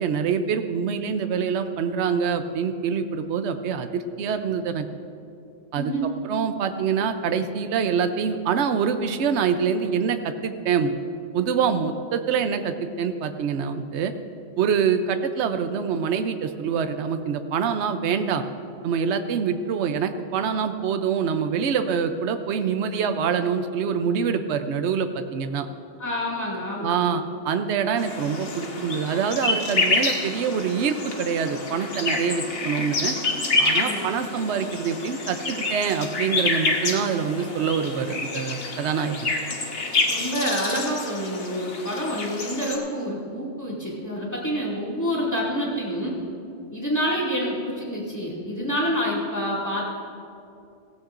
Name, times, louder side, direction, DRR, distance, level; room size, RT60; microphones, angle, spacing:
voice 1, 0.0-4.9 5.7-5.9 6.2-11.0 11.3-14.1 14.6-18.4 18.8-25.7 26.8-33.2 33.6-39.3, right 6 dB, 75° right, 8 dB, 0.9 m, -25 dB
voice 2, 5.8-6.2 26.0-27.2 33.7-34.0 40.1-46.2 46.7-49.8, equal, 15° left, -5 dB, 2.3 m, -27 dB
sound 1, 28.0-42.8, left 3 dB, 60° left, 1.4 m, -28 dB
16.5 x 16.0 x 2.5 m, 2.5 s
omnidirectional pair, 1.2 m